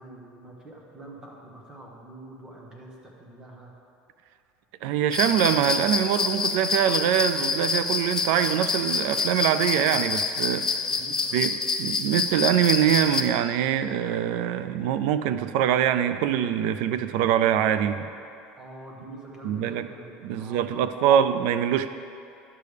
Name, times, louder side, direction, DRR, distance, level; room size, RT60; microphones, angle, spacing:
voice 1, 0.0-3.7 10.9-11.5 18.6-21.1, right 1 dB, 20° right, -1 dB, 1.2 m, -45 dB
voice 2, 4.8-10.7 11.3-18.1 19.4-19.9 20.2-21.9, right 10 dB, 75° right, 11 dB, 0.4 m, -24 dB
sound 1, 5.1-13.2, left 4 dB, 20° left, 0.5 m, -27 dB
10.5 x 6.6 x 3.4 m, 2.5 s
cardioid pair, 145°, 3 cm